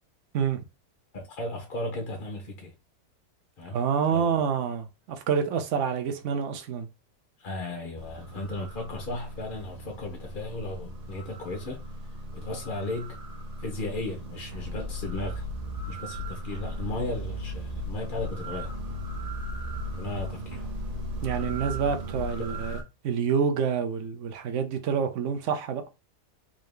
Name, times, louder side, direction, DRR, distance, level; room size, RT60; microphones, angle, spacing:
voice 1, 1.1-2.7 3.6-3.8 4.1-4.4 7.4-11.8 12.3-13.2 13.6-15.5 15.9-18.7 19.9-20.7 22.5-22.6, left 2 dB, 55° left, 0.6 m, -35 dB
voice 2, 3.7-6.9 21.2-25.8, right 7 dB, 60° right, 0.8 m, -27 dB
sound 1, 7.9-22.8, right 2 dB, 80° right, 0.3 m, -39 dB
sound 2, 14.5-22.5, left 2 dB, 40° right, 1.1 m, -37 dB
3.7 x 2.8 x 3.2 m
omnidirectional pair, 1.8 m